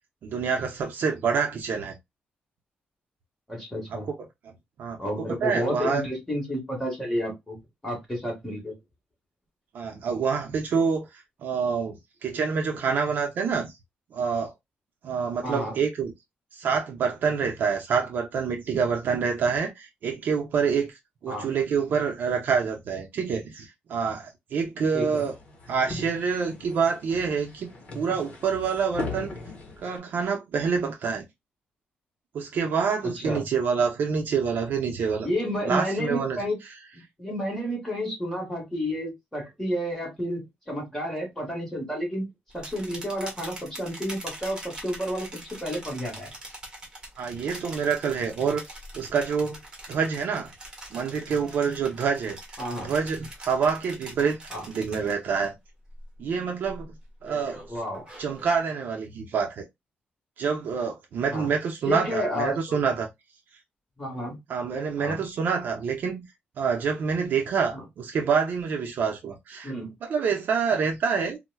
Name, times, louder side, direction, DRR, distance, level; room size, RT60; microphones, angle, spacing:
voice 1, 0.2-1.9 3.9-4.1 4.8-5.0 5.4-6.0 9.7-13.7 14.1-14.5 15.0-16.1 16.5-20.9 21.2-25.3 25.7-27.7 27.9-29.3 29.8-31.2 32.3-35.3 35.7-36.4 47.2-48.6 48.9-49.6 49.9-50.5 50.9-52.4 52.8-55.5 56.2-56.9 57.2-57.6 58.2-59.6 60.4-63.1 64.5-66.2 66.6-69.7 70.1-71.4, right 6 dB, 55° right, 0.6 m, -27 dB
voice 2, 3.5-4.1 5.0-8.7 15.4-15.8 21.3-21.5 24.9-25.2 33.2-33.4 35.2-36.6 36.9-42.3 42.5-46.3 52.6-52.9 54.5-54.7 57.7-58.1 61.3-61.5 61.8-62.8 64.0-64.4 65.0-65.2 67.7-67.8 69.6-69.9, equal, 5° left, 1.5 m, -31 dB
sound 1, 25.0-30.0, left 2 dB, 35° left, 1.0 m, -39 dB
sound 2, 42.5-55.5 55.8-56.2 56.6-58.5, right 1 dB, 20° right, 1.2 m, -43 dB
4.3 x 2.1 x 2.2 m
wide cardioid pair, 180°, 4 cm